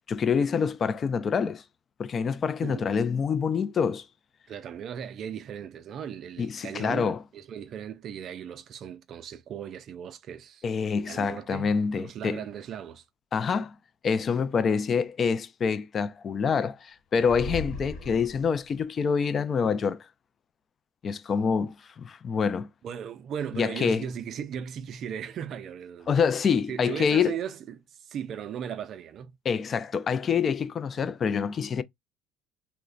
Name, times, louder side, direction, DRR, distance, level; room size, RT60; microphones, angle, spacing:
voice 1, 0.1-1.6 2.0-4.1 6.4-7.2 10.6-12.4 13.3-13.8 14.0-20.0 21.0-22.7 23.5-24.0 26.1-27.4 29.4-31.8, left 6 dB, 40° left, 0.3 m, -26 dB
voice 2, 4.5-10.6 11.0-13.1 22.8-26.2 26.7-29.3, right 8 dB, 50° right, 0.4 m, -37 dB
sound 1, 17.2-18.8, left 2 dB, 65° left, 0.8 m, -37 dB
3.0 x 2.1 x 2.4 m
supercardioid pair, 95°, 0 cm